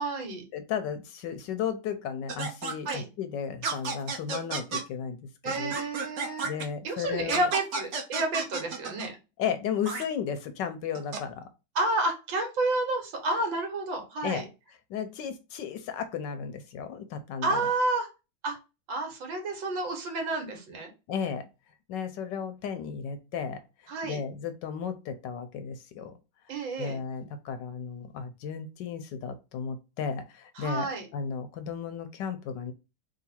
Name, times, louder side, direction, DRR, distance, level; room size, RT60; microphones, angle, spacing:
voice 1, 0.0-0.5 2.9-3.1 5.4-6.5 6.8-9.2 11.8-14.5 17.4-18.1 18.4-18.6 18.9-20.9 23.9-24.2 26.5-27.0 30.6-31.1, right 2 dB, 75° right, 4 dB, 1.9 m, -30 dB
voice 2, 0.5-5.2 5.4-5.8 6.4-7.5 9.4-11.4 14.2-14.5 14.9-17.6 21.1-21.4 21.9-23.6 24.0-26.1 26.8-32.7, left 7 dB, 75° left, 9 dB, 1.2 m, -34 dB
sound 1, 2.3-2.9 3.6-4.8 5.5-6.6 7.3-9.1 9.8-10.0 10.9-11.2, right 4 dB, 55° right, 0.8 m, -32 dB
3.7 x 2.7 x 4.2 m, 0.28 s
omnidirectional pair, 2.1 m